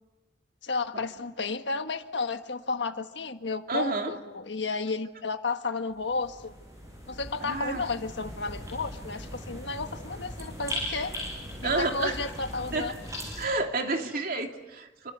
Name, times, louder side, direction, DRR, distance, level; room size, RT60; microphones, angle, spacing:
voice 1, 0.6-6.5 7.1-11.1 11.6-12.9, left 4 dB, 70° left, 7 dB, 1.5 m, -32 dB
voice 2, 3.7-4.1 7.4-7.8 11.6-12.2 12.7-12.9 13.4-15.1, right 3 dB, 50° right, 3 dB, 2.9 m, -30 dB
sound 1, 5.9-13.5, equal, 15° right, 6.6 m, -39 dB
28.0 x 25.0 x 8.1 m, 1.1 s
head